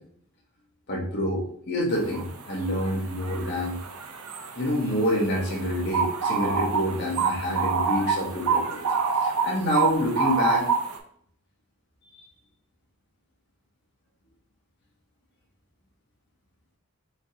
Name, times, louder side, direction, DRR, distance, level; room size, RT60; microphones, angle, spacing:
voice 1, 0.9-3.8 4.6-8.9 9.2-10.6 12.1-12.2, equal, 50° left, -4 dB, 1.1 m, -27 dB
sound 1, 2.1-2.2 2.6-11.0, right 5 dB, 85° right, 0.7 m, -27 dB
4.8 x 3.6 x 2.8 m, 0.63 s
head